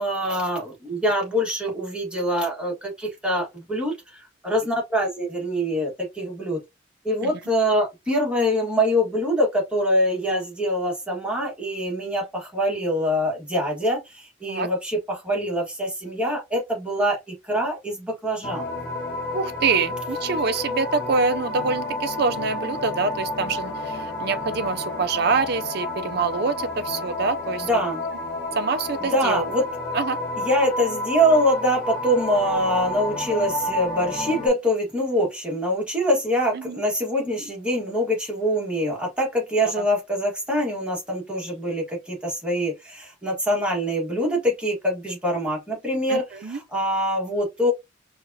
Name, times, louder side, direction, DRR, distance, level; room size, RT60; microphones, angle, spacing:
voice 1, 0.0-6.6 7.0-18.7 27.6-28.0 29.0-29.6 30.4-47.7, equal, 5° right, 1.6 m, -24 dB
sound 1, 18.4-34.5, left 2 dB, 50° left, 1.2 m, -30 dB
voice 2, 19.3-27.7 28.5-29.4 29.9-30.2 36.5-36.8 39.8-39.9 46.1-46.6, right 4 dB, 55° right, 0.5 m, -25 dB
4.8 x 2.4 x 2.7 m
head